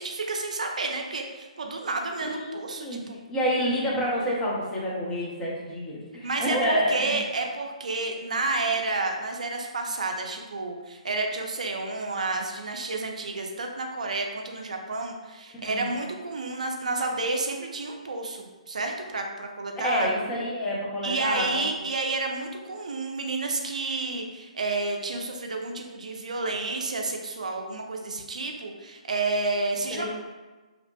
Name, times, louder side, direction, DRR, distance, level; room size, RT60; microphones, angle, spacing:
voice 1, 0.0-3.2 6.2-20.1 21.0-30.1, right 3 dB, 70° right, 2 dB, 0.4 m, -30 dB
voice 2, 2.2-3.0 3.3-7.1 15.6-15.9 19.8-21.7 29.9-30.1, equal, 15° left, -5 dB, 0.6 m, -28 dB
2.8 x 2.1 x 2.6 m, 1.3 s
figure-of-eight pair, 135°, 4 cm